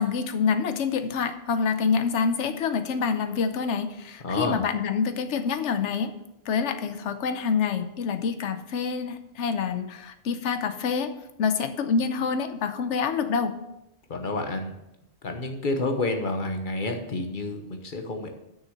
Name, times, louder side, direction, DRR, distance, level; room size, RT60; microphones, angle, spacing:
voice 1, 0.0-6.1 6.5-13.6, left 6 dB, 80° left, 9 dB, 1.0 m, -27 dB
voice 2, 4.2-4.6 14.1-14.8 15.2-18.3, left 2 dB, 45° left, 5 dB, 1.1 m, -29 dB
6.6 x 6.2 x 6.5 m, 0.87 s
omnidirectional pair, 1.2 m